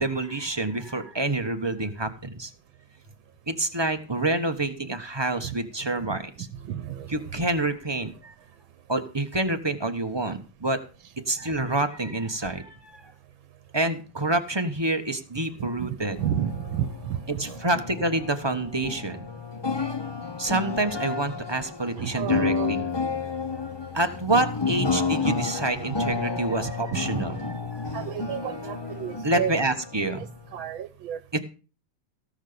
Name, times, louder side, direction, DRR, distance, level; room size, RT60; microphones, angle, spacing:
voice 1, 0.0-2.5 3.5-6.3 7.1-8.3 8.9-10.8 11.3-13.0 13.7-16.2 17.3-19.3 20.4-22.8 23.9-27.9 29.2-30.3 31.3-31.4, right 2 dB, 15° right, 6 dB, 1.0 m, -27 dB
voice 2, 6.7-7.3 15.6-17.8 22.0-22.7 25.9-26.0 26.6-27.4 27.9-29.5 30.2-31.4, right 10 dB, 80° right, 12 dB, 1.6 m, -32 dB
sound 1, 16.0-30.7, left 4 dB, 35° left, 0.4 m, -31 dB
17.5 x 6.5 x 6.8 m, 0.36 s
omnidirectional pair, 2.1 m